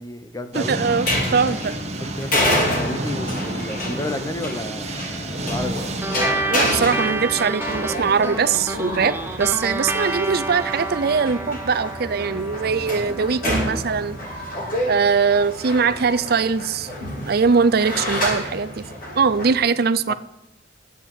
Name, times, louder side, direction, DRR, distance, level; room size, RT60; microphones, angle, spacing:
voice 1, 0.0-0.8 2.0-6.0 15.8-16.1 20.1-20.2, left 1 dB, 20° left, 9 dB, 1.0 m, -32 dB
sound 1, 0.5-6.2, right 1 dB, 40° right, 1.7 m, -30 dB
voice 2, 0.5-1.7 6.5-14.2 14.9-16.9 17.3-18.9 19.2-20.1, right 5 dB, 55° right, 14 dB, 0.5 m, -21 dB
sound 2, 0.8-19.6, left 1 dB, 50° left, 5.6 m, -28 dB
sound 3, 6.0-14.8, right 2 dB, 10° right, 0.8 m, -30 dB
10.5 x 8.1 x 9.0 m, 0.84 s
head